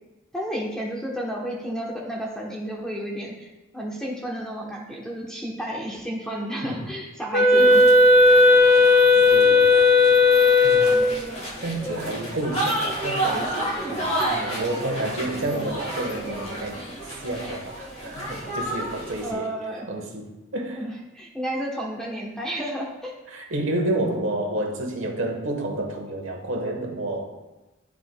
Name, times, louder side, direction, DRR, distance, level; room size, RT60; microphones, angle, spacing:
voice 1, 0.3-3.5 3.7-7.9 19.2-19.9 20.8-23.2, equal, 5° left, -3 dB, 0.9 m, -31 dB
Wind instrument woodwind instrument, 7.3-11.2, left 3 dB, 55° left, 0.9 m, -15 dB
sound 1, 7.5-19.3, right 1 dB, 30° left, 1.5 m, -31 dB
voice 2, 7.6-7.9 9.3-9.7 10.6-11.0 11.6-17.0 17.2-19.5 19.9-20.9 23.3-27.2, right 1 dB, 70° right, 2 dB, 1.1 m, -30 dB
11.5 x 4.8 x 2.2 m, 1.0 s
head